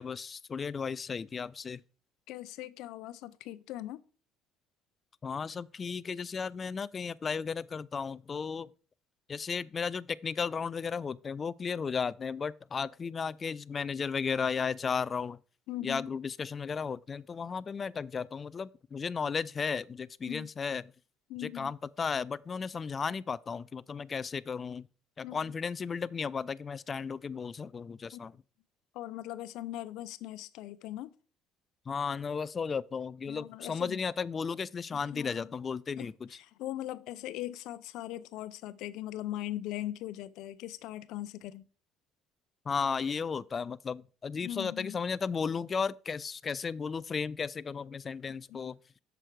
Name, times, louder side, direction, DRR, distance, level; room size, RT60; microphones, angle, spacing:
voice 1, 0.0-1.8 5.2-8.7 9.3-15.4 15.8-20.9 21.4-24.9 25.2-28.3 31.9-36.1 42.7-48.8, left 5 dB, 25° left, 0.3 m, -34 dB
voice 2, 2.3-4.0 15.7-16.1 20.3-20.5 21.3-21.7 25.2-25.4 28.1-28.2 28.9-31.1 33.3-34.0 34.9-35.5 36.0-36.1 36.4-41.6 44.4-45.0 48.3-48.6, left 14 dB, 70° left, 0.6 m, -40 dB
7.8 x 6.2 x 4.7 m
cardioid pair, 145°, 0 cm